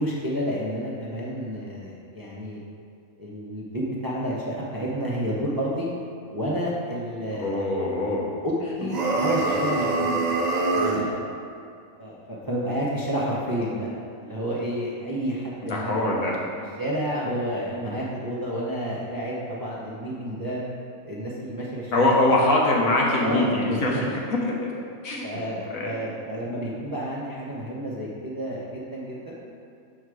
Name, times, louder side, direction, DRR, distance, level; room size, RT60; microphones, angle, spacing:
voice 1, 0.0-2.6 3.2-5.9 6.3-7.7 8.4-10.3 10.7-11.3 12.0-13.9 14.2-16.4 16.8-20.6 21.0-22.1 23.2-24.0 25.2-29.4, equal, 20° right, -5 dB, 0.6 m, -30 dB
voice 2, 7.3-8.3 9.2-9.6 9.8-9.9 15.6-16.4 21.9-24.5 25.0-25.3 25.7-25.9, left 2 dB, 75° left, -3 dB, 1.4 m, -23 dB
sound 1, 8.9-11.1, right 3 dB, 85° right, 0.3 m, -24 dB
6.3 x 4.3 x 4.7 m, 2.4 s
omnidirectional pair, 1.5 m